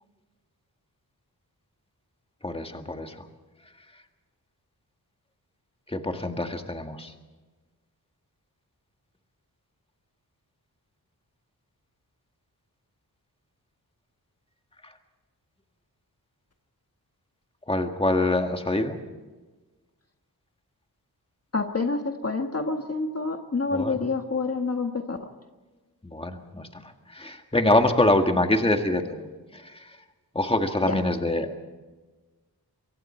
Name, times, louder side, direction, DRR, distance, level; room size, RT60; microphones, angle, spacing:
voice 1, 2.4-3.3 5.9-7.1 14.8-14.9 17.7-19.0 23.7-24.0 26.0-29.3 29.5-30.0 30.3-31.6, left 2 dB, 15° left, 5 dB, 1.8 m, -25 dB
voice 2, 21.5-25.3 30.8-30.9, left 3 dB, 40° left, 4 dB, 1.6 m, -28 dB
27.5 x 24.0 x 4.4 m, 1.3 s
wide cardioid pair, 120°, 38 cm